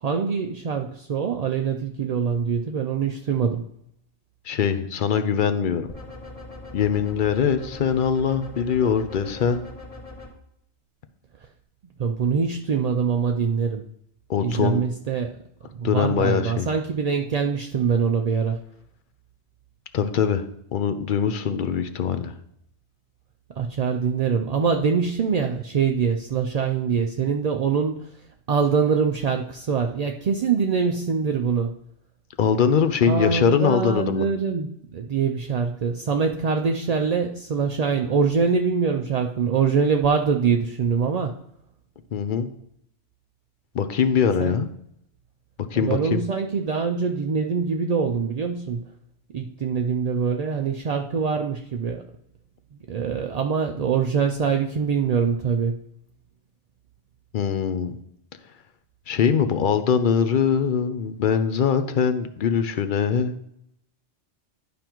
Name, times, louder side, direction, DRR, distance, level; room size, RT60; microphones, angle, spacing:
voice 1, 0.0-3.6 12.0-13.9 14.4-15.3 15.7-18.6 23.6-28.1 28.5-31.8 33.1-41.4 44.4-44.6 45.7-48.9 49.3-52.1 52.7-55.8, right 6 dB, 60° right, 4 dB, 0.4 m, -24 dB
voice 2, 4.5-5.9 6.7-9.6 14.3-14.8 15.8-16.7 19.9-22.3 32.4-34.3 42.1-42.5 43.7-44.7 45.7-46.2 57.3-57.9 59.1-63.4, left 7 dB, 55° left, 9 dB, 0.6 m, -22 dB
sound 1, 5.9-10.3, left 2 dB, 30° left, 1.4 m, -41 dB
11.0 x 5.1 x 3.0 m, 0.73 s
omnidirectional pair, 1.2 m